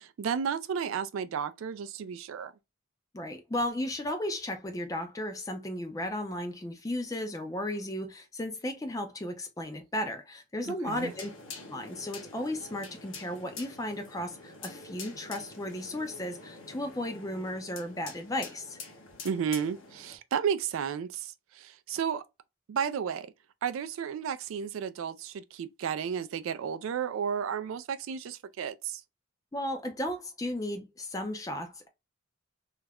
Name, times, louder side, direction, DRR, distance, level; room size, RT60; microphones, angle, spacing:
voice 1, 0.0-2.5 10.6-11.1 19.2-22.2 22.7-23.3 23.6-29.0, right 7 dB, 65° right, 0.3 m, -33 dB
voice 2, 3.1-11.3 11.7-18.8 29.5-31.9, left 1 dB, 15° left, 0.4 m, -35 dB
sound 1, 11.0-20.2, left 3 dB, 65° left, 0.7 m, -46 dB
2.3 x 2.1 x 3.3 m
head